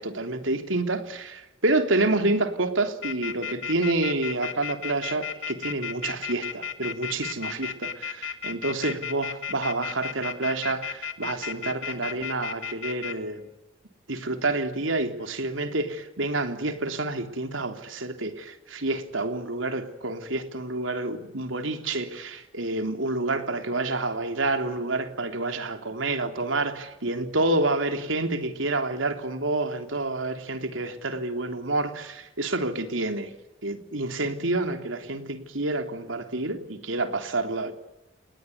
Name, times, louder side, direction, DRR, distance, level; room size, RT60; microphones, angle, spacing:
voice 1, 0.0-13.5 14.1-33.3 33.6-37.7, right 2 dB, 90° right, 3.4 m, -28 dB
sound 1, 3.0-13.1, left 7 dB, 85° left, 2.4 m, -33 dB
29.0 x 21.0 x 9.5 m
head